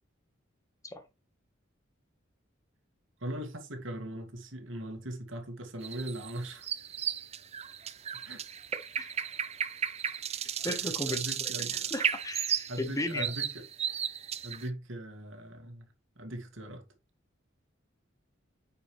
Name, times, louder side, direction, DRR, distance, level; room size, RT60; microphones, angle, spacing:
voice 1, 3.2-6.7 8.2-8.4 10.6-11.9 12.7-13.6 14.4-15.9 16.2-16.8, right 1 dB, 80° right, 2.0 m, -40 dB
sound 1, 5.8-14.7, right 8 dB, 35° right, 0.5 m, -34 dB
voice 2, 10.6-13.3, left 1 dB, 15° left, 1.2 m, -36 dB
8.8 x 5.0 x 3.2 m
head